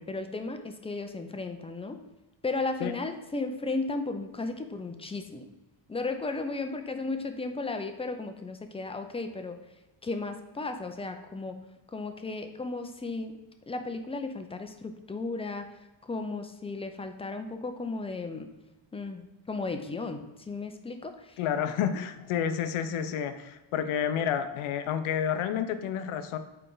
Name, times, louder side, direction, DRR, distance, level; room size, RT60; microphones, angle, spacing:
voice 1, 0.0-2.0 2.4-5.5 5.9-9.6 10.0-11.6 11.9-13.4 13.7-18.5 18.9-21.4, left 3 dB, 15° left, 7 dB, 0.4 m, -35 dB
voice 2, 21.4-26.4, left 8 dB, 80° left, 9 dB, 0.8 m, -30 dB
8.4 x 3.3 x 3.9 m, 1.0 s
cardioid pair, 150°, 49 cm